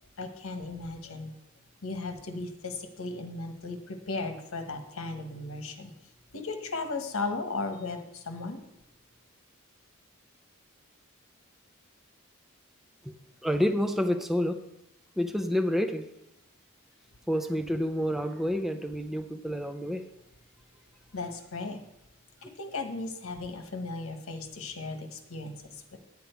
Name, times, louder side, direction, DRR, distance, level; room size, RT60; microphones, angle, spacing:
voice 1, 0.2-1.3 1.8-5.9 6.3-8.6 21.1-21.8 22.4-26.0, left 3 dB, 70° left, 6 dB, 1.3 m, -36 dB
voice 2, 13.4-14.6 15.2-16.1 17.3-20.0, equal, ahead, 7 dB, 0.5 m, -28 dB
9.6 x 8.7 x 4.5 m, 0.84 s
head